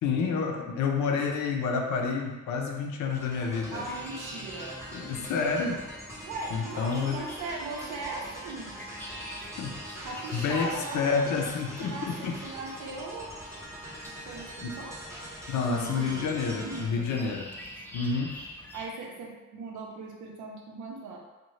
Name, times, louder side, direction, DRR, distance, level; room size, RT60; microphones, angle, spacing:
voice 1, 0.0-3.9 4.9-5.9 6.5-7.2 9.6-9.8 10.3-12.4 14.6-14.8 15.5-17.5 17.9-18.4, left 5 dB, 75° left, 2 dB, 0.5 m, -29 dB
sound 1, 3.1-18.9, left 1 dB, 5° left, 0.3 m, -47 dB
sound 2, 3.1-16.8, right 1 dB, 10° right, 0.8 m, -43 dB
voice 2, 3.7-4.8 6.2-8.9 10.0-11.5 11.8-13.3 14.0-15.0 15.5-17.3 18.7-21.2, right 3 dB, 80° right, -1 dB, 0.7 m, -39 dB
2.7 x 2.2 x 3.1 m, 1.2 s
cardioid pair, 90°, 30 cm